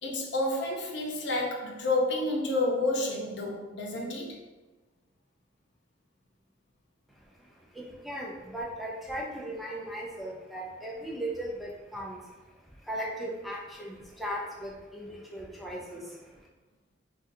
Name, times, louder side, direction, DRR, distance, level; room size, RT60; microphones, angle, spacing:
voice 1, 0.0-4.4, left 2 dB, 75° left, -1 dB, 0.6 m, -30 dB
voice 2, 7.1-12.4 12.6-16.5, right 1 dB, ahead, -4 dB, 0.4 m, -38 dB
3.8 x 2.4 x 2.6 m, 1.2 s
head